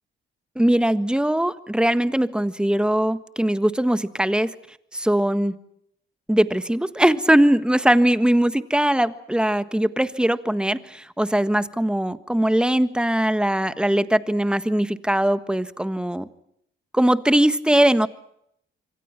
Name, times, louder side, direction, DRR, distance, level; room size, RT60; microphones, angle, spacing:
voice 1, 0.5-4.5 4.9-5.5 6.3-16.3 16.9-18.1, right 1 dB, 5° right, 13 dB, 1.5 m, -20 dB
27.0 x 24.5 x 6.0 m, 0.74 s
cardioid pair, 90°, 20 cm